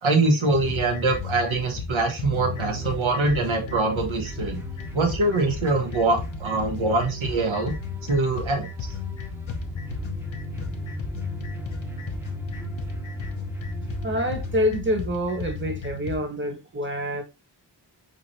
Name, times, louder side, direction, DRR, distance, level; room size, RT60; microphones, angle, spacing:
voice 1, 0.0-4.6 4.9-7.7 8.0-8.7, right 3 dB, 80° right, 1.4 m, -23 dB
sound 1, 0.5-16.2, left 4 dB, 75° left, 1.0 m, -34 dB
sound 2, 2.4-14.6, right 1 dB, 5° right, 0.9 m, -38 dB
voice 2, 14.0-17.2, equal, 25° right, 1.3 m, -26 dB
4.6 x 4.0 x 2.9 m
wide cardioid pair, 90°, 47 cm